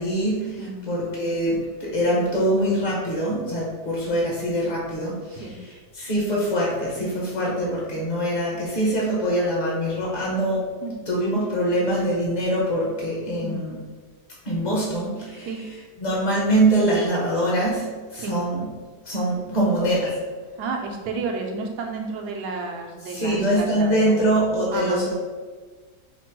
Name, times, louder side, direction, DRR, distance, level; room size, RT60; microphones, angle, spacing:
voice 1, 0.0-0.6 0.9-10.7 11.1-13.8 14.4-15.5 16.0-18.7 19.0-20.2 23.0-25.1, right 1 dB, 40° left, -5 dB, 0.6 m, -23 dB
voice 2, 20.6-24.2 24.7-25.0, right 4 dB, 70° right, 2 dB, 1.2 m, -31 dB
5.0 x 2.0 x 4.5 m, 1.4 s
omnidirectional pair, 1.9 m